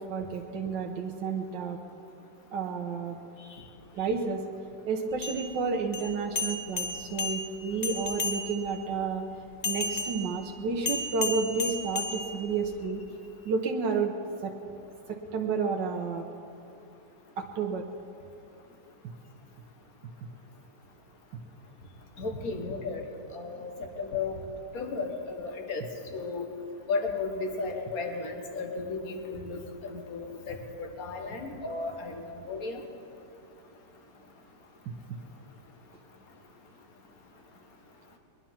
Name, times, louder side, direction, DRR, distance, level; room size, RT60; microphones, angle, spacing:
voice 1, 0.0-1.8 2.5-3.2 3.9-4.4 4.9-9.2 9.6-13.0 13.4-14.1 14.4-14.5 15.1-16.2 17.4-17.8, right 4 dB, 60° right, 1 dB, 1.5 m, -31 dB
sound 1, 5.1-8.8 9.6-12.8, left 3 dB, 70° left, 0.4 m, -34 dB
voice 2, 22.2-23.1 23.3-24.4 24.7-25.8 26.1-26.5 26.9-32.8, left 4 dB, 45° left, 3 dB, 1.9 m, -34 dB
22.5 x 11.0 x 5.9 m, 2.6 s
omnidirectional pair, 2.4 m